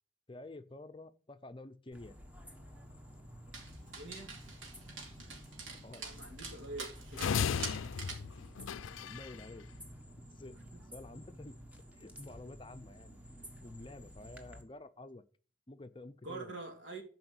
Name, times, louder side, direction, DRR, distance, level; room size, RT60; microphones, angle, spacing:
voice 1, 0.3-2.1 5.5-6.0 8.9-9.7 10.4-10.6 10.9-13.2 13.6-15.2 15.7-16.6, left 2 dB, 25° left, 0.6 m, -50 dB
sound 1, 1.9-14.6, equal, 5° right, 1.3 m, -52 dB
Dog, 3.5-8.3, right 4 dB, 90° right, 2.7 m, -46 dB
voice 2, 3.9-4.4 6.0-8.0 10.7-10.8 16.2-17.0, right 3 dB, 70° right, 2.6 m, -46 dB
sound 2, 7.2-9.4, left 7 dB, 85° left, 0.4 m, -35 dB
12.0 x 4.9 x 8.0 m
head